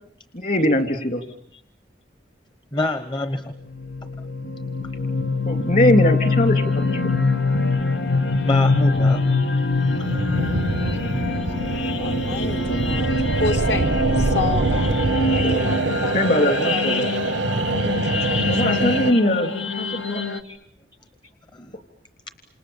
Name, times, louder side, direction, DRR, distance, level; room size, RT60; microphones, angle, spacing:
voice 1, 0.3-1.2 5.5-7.3 15.2-15.7 16.1-17.4 18.5-20.2, left 1 dB, 45° left, 6 dB, 3.3 m, -22 dB
voice 2, 2.7-3.5 8.4-9.2 20.4-20.6 21.5-21.8, left 1 dB, 25° left, 9 dB, 1.1 m, -26 dB
sound 1, 3.7-20.4, left 3 dB, 90° left, 1.8 m, -24 dB
sound 2, 9.8-19.1, right 2 dB, 90° right, 1.0 m, -24 dB
voice 3, 12.0-14.9 15.2-18.6, left 3 dB, 65° left, 4 dB, 2.8 m, -31 dB
28.5 x 27.5 x 7.2 m, 0.70 s
head